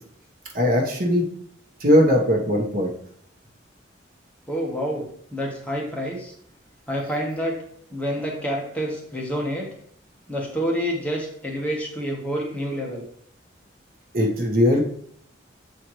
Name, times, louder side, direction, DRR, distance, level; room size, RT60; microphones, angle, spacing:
voice 1, 0.5-1.2 1.8-2.9 14.1-14.8, left 1 dB, 50° right, 0 dB, 1.2 m, -19 dB
voice 2, 4.5-5.0 5.3-6.3 6.9-7.5 7.9-9.7 10.3-13.1, equal, 5° left, -2 dB, 1.1 m, -28 dB
7.5 x 4.3 x 3.1 m, 0.66 s
head